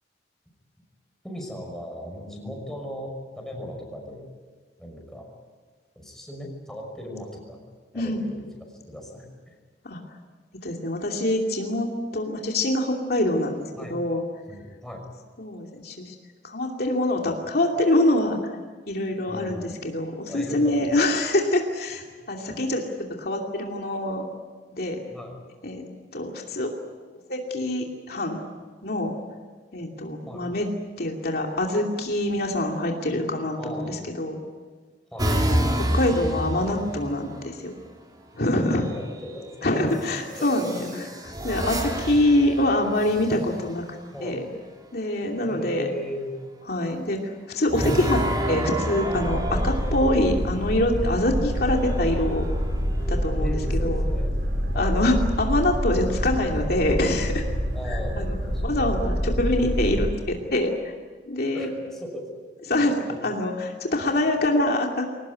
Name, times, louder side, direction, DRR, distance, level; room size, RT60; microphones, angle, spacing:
voice 1, 1.2-4.2 4.8-5.3 6.0-7.6 7.9-9.5 13.8-14.0 14.5-15.1 19.3-19.7 20.3-20.9 22.5-22.6 25.1-25.4 30.3-30.4 32.4-32.5 33.6-34.0 35.1-35.3 38.5-39.5 40.4-40.9 41.3-41.4 44.1-44.4 45.4-46.3 49.5-49.7 51.3-51.6 53.4-54.3 54.7-55.0 57.7-58.6 61.5-62.4 62.7-63.2, left 1 dB, 5° left, 0 dB, 5.9 m, -38 dB
voice 2, 9.8-10.2 10.6-11.9 12.1-14.2 15.4-16.1 16.4-18.6 18.9-22.8 23.2-24.2 24.8-25.0 25.6-25.9 26.1-26.7 27.1-28.4 28.8-29.1 29.7-30.7 31.0-34.4 35.5-37.7 38.3-38.8 39.6-41.1 41.4-43.8 44.2-44.4 44.9-45.9 46.7-52.4 53.1-54.0 54.7-57.4 57.8-58.4 58.6-60.9 61.2-61.7 62.7-65.1, left 1 dB, 60° left, 1 dB, 2.7 m, -25 dB
sound 1, 35.2-37.4 38.7-39.2 40.3-43.7 47.7-50.6 51.4-53.2, right 1 dB, 25° right, 3.4 m, -29 dB
Boat Water vehicle, 49.1-60.1, equal, 90° right, 5.2 m, -26 dB
23.0 x 19.0 x 9.7 m, 1.5 s
head